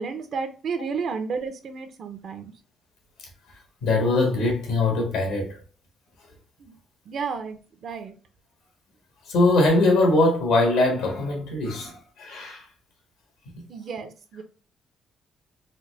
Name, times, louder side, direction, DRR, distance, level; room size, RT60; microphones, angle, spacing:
voice 1, 0.0-2.5 6.6-6.7 7.1-8.1 13.7-14.4, right 5 dB, 60° right, 0.7 m, -32 dB
voice 2, 3.8-5.6 9.2-12.7 13.5-13.6, left 2 dB, 85° left, 1.6 m, -22 dB
4.1 x 2.2 x 3.2 m
cardioid pair, 90°, 0 cm